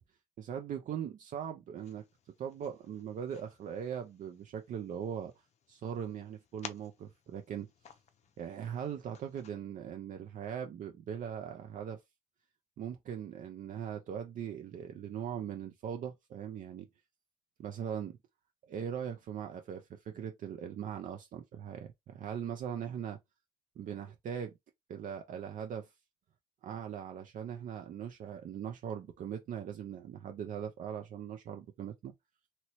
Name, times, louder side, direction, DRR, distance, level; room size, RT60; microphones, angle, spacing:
voice 1, 0.4-5.3 5.7-7.7 8.4-12.0 12.8-16.9 17.6-18.2 18.7-23.2 23.8-24.5 24.9-25.9 26.6-32.1, right 8 dB, 50° right, 0.5 m, -40 dB
sound 1, 1.8-9.5, left 7 dB, 40° left, 0.5 m, -55 dB
3.0 x 2.8 x 2.9 m
cardioid pair, 110°, 17 cm